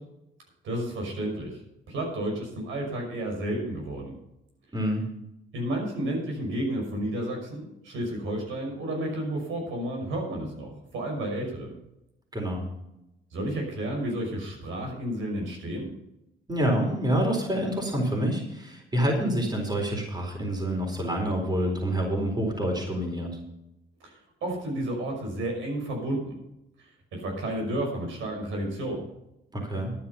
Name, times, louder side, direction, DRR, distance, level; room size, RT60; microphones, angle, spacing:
voice 1, 0.6-1.6 1.9-4.2 5.5-11.7 13.3-15.9 24.0-24.1 24.4-26.4 27.1-29.1, right 1 dB, 80° right, 1 dB, 5.8 m, -31 dB
voice 2, 4.7-5.0 12.3-12.7 16.5-23.3 29.5-29.9, right 1 dB, 20° right, 1 dB, 4.3 m, -27 dB
12.0 x 9.7 x 5.7 m, 0.86 s
cardioid pair, 90°, 20 cm